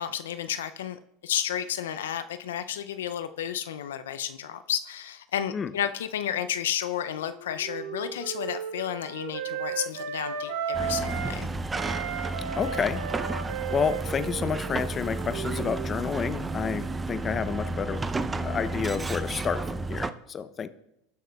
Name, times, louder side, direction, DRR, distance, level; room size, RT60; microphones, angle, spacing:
voice 1, 0.0-11.5, left 10 dB, 85° left, 11 dB, 0.4 m, -32 dB
Wind instrument woodwind instrument, 7.0-11.4 11.7-16.2, right 7 dB, 75° right, 1.1 m, -35 dB
sound 1, 10.7-20.1, right 2 dB, 15° right, 0.5 m, -32 dB
voice 2, 12.6-13.0 13.7-18.0 18.4-19.6 19.9-20.7, left 6 dB, 30° left, 12 dB, 0.6 m, -29 dB
18.5 x 6.4 x 2.3 m, 0.81 s
hypercardioid pair, 95°, 0 cm